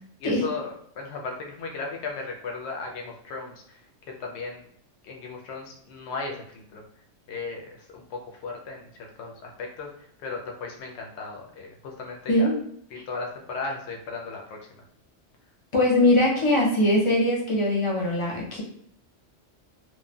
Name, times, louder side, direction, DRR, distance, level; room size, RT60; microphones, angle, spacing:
voice 1, 0.2-4.6 5.0-6.8 7.3-12.5 12.9-14.8, left 4 dB, 70° left, 1 dB, 0.9 m, -36 dB
voice 2, 15.7-18.6, left 1 dB, 30° left, -3 dB, 0.7 m, -21 dB
3.1 x 2.2 x 2.2 m, 0.66 s
omnidirectional pair, 1.2 m